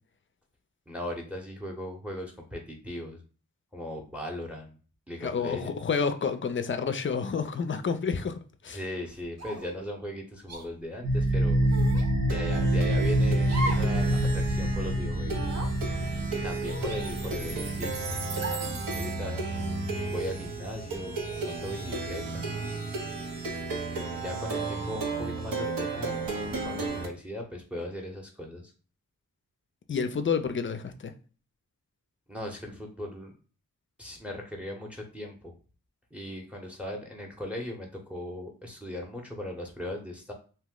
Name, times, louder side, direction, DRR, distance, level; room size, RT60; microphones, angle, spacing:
voice 1, 0.9-3.2 3.7-4.8 5.1-5.8 8.7-11.7 12.3-15.6 16.0-18.1 18.9-19.7 20.1-22.5 24.2-28.7 32.3-33.3 34.0-35.5 36.1-40.3, left 1 dB, 5° right, 0.7 m, -38 dB
voice 2, 5.2-8.8 29.9-31.1, left 5 dB, 35° left, 0.4 m, -29 dB
sound 1, 9.4-9.8 10.5-10.7 11.7-12.1 13.4-14.0 14.3-14.4 15.3-15.7 16.6-17.5 18.4-18.8, right 1 dB, 50° right, 0.8 m, -37 dB
Plucked string instrument, 11.0-27.1, right 1 dB, 80° right, 0.7 m, -29 dB
2.7 x 2.0 x 3.6 m
cardioid pair, 55°, 34 cm